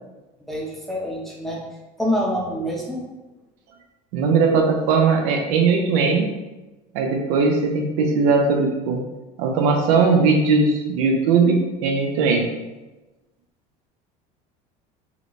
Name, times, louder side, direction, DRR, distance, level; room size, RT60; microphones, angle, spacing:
voice 1, 0.4-1.6 2.0-3.0, equal, ahead, -4 dB, 0.6 m, -26 dB
voice 2, 4.1-6.2 6.9-9.0 9.4-12.5, right 4 dB, 90° right, 2 dB, 0.6 m, -19 dB
3.9 x 2.1 x 3.0 m, 1.1 s
cardioid pair, 140°, 17 cm